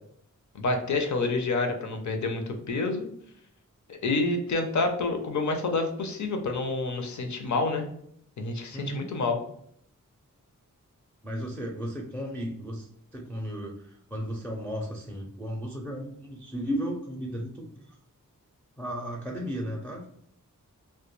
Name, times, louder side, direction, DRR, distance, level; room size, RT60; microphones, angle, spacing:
voice 1, 0.5-3.1 3.9-7.8 8.4-9.4, left 3 dB, 60° left, 5 dB, 0.5 m, -28 dB
voice 2, 8.7-9.1 11.2-18.0 18.8-20.0, equal, 5° left, -1 dB, 0.4 m, -35 dB
2.2 x 2.2 x 3.0 m, 0.66 s
wide cardioid pair, 75°, 32 cm